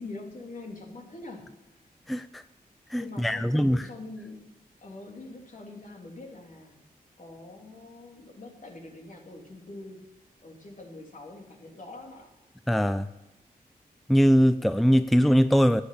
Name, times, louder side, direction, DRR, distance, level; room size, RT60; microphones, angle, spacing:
voice 1, 0.0-1.5 3.0-4.5 4.8-6.8 7.2-10.0 10.4-12.3, left 2 dB, 55° left, 0 dB, 3.1 m, -44 dB
voice 2, 2.1-2.4 2.9-3.8 12.7-13.1 14.1-15.8, equal, ahead, 12 dB, 0.5 m, -21 dB
11.5 x 8.9 x 8.4 m, 0.99 s
cardioid pair, 60°, 16 cm